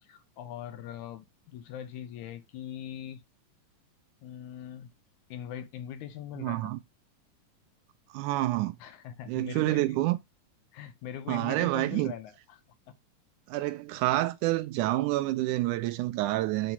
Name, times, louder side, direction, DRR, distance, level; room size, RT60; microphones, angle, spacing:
voice 1, 0.0-3.2 4.2-4.9 5.3-6.7 8.8-10.0 10.7-12.6, left 10 dB, 75° left, 2.0 m, -41 dB
voice 2, 6.4-6.8 8.1-8.8 9.3-10.2 11.3-12.1 13.5-16.7, right 17 dB, 80° right, 1.9 m, -28 dB
9.0 x 3.0 x 5.5 m
omnidirectional pair, 3.7 m